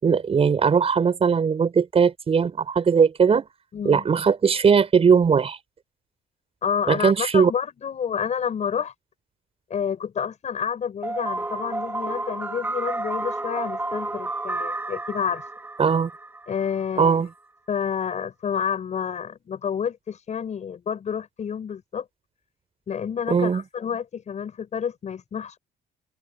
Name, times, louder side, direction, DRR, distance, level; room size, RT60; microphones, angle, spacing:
voice 1, 0.0-3.5 3.8-5.6 6.9-7.5 15.8-16.1 17.0-17.3 23.3-23.6, right 6 dB, 35° right, 6.5 m, -19 dB
voice 2, 3.7-4.0 6.6-8.9 9.7-15.4 16.5-17.2 17.7-22.1 22.9-25.6, left 7 dB, 45° left, 6.7 m, -29 dB
sound 1, 11.0-16.9, right 2 dB, 15° right, 4.8 m, -31 dB
open air
cardioid pair, 110°, 17 cm